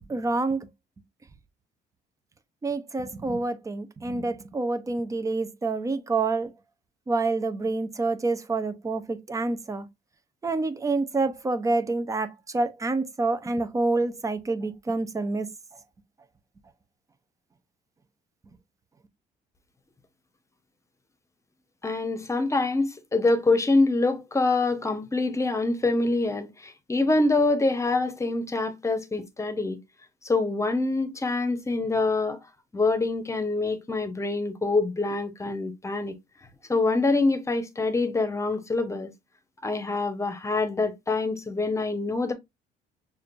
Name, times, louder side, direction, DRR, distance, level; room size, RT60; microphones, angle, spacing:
voice 1, 0.1-0.7 2.6-6.5 7.1-9.9 10.4-15.5, right 3 dB, 20° right, 0.6 m, -27 dB
voice 2, 21.8-29.8 30.2-32.4 32.7-36.1 36.7-39.1 39.6-42.3, left 3 dB, 15° left, 1.0 m, -25 dB
6.3 x 2.5 x 2.5 m
cardioid pair, 110°, 17 cm